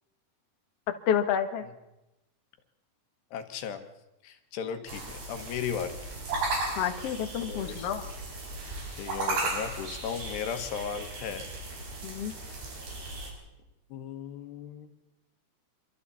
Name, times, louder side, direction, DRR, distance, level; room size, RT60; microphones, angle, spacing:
voice 1, 1.1-1.7 6.8-8.1 12.0-12.3, left 8 dB, 55° left, 6 dB, 1.9 m, -29 dB
voice 2, 3.3-3.8 4.2-6.0 7.4-7.9 9.0-11.4 12.4-12.6 13.9-14.9, left 8 dB, 85° left, 7 dB, 3.7 m, -36 dB
sound 1, 4.9-13.3, right 2 dB, 90° right, 7.3 m, -36 dB
27.0 x 24.5 x 4.2 m, 0.94 s
omnidirectional pair, 4.7 m